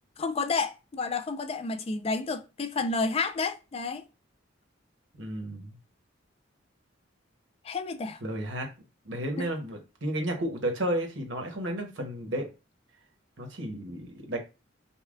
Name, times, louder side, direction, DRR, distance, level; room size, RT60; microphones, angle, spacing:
voice 1, 0.2-4.0 7.6-8.2 9.4-9.5, left 4 dB, 30° left, 0.4 m, -30 dB
voice 2, 5.2-5.8 8.2-8.7 9.0-12.5 13.4-14.4, right 1 dB, 75° right, 1.1 m, -32 dB
5.4 x 2.2 x 2.4 m
head